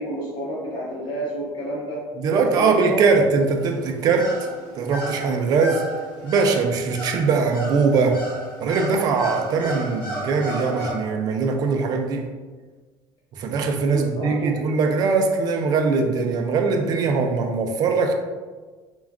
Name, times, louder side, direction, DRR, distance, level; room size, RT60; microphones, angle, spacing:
voice 1, 0.0-2.0 2.6-3.0 13.9-14.5, equal, 45° left, -6 dB, 0.7 m, -29 dB
voice 2, 2.2-4.3 4.8-5.8 6.2-8.2 8.6-12.3 13.3-18.1, right 4 dB, 45° right, 3 dB, 0.3 m, -21 dB
sound 1, 3.6-10.9, right 1 dB, 10° left, 0.9 m, -34 dB
2.3 x 2.2 x 3.4 m, 1.4 s
cardioid pair, 155°, 9 cm